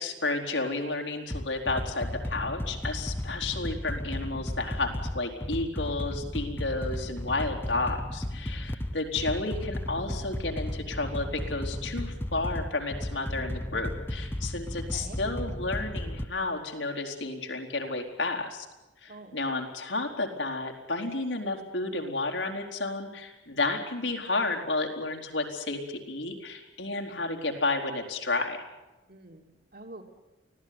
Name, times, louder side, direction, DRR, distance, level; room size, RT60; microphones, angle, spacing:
voice 1, 0.0-18.7 19.0-28.6, left 3 dB, 85° left, 2 dB, 4.2 m, -32 dB
sound 1, 1.3-16.2, left 1 dB, 15° left, 0.9 m, -34 dB
voice 2, 14.8-15.2 19.1-19.3 29.1-30.0, right 2 dB, 55° right, 4 dB, 3.2 m, -47 dB
24.5 x 17.0 x 9.6 m, 1.1 s
head